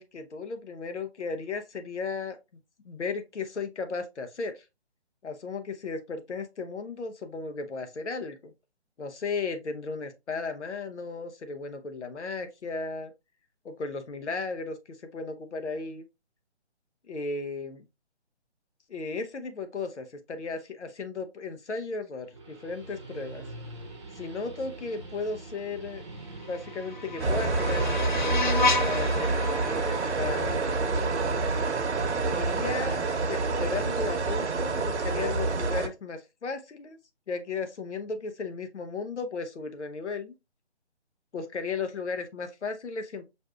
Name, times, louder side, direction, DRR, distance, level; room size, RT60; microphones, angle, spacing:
voice 1, 0.0-2.4 2.8-4.6 5.2-8.5 9.0-13.1 13.6-14.8 15.0-16.0 17.1-17.9 18.9-23.4 24.1-26.0 26.4-31.1 32.3-33.0 33.3-37.0 37.3-40.3 41.3-43.3, left 4 dB, 90° left, 0.9 m, -35 dB
Guitar, 22.2-30.9, right 2 dB, 25° right, 0.7 m, -44 dB
sound 1, 26.4-31.4, left 3 dB, 45° left, 0.5 m, -32 dB
sound 2, 27.2-35.9, right 3 dB, 85° right, 0.9 m, -27 dB
5.2 x 2.6 x 2.3 m
hypercardioid pair, 165°, 34 cm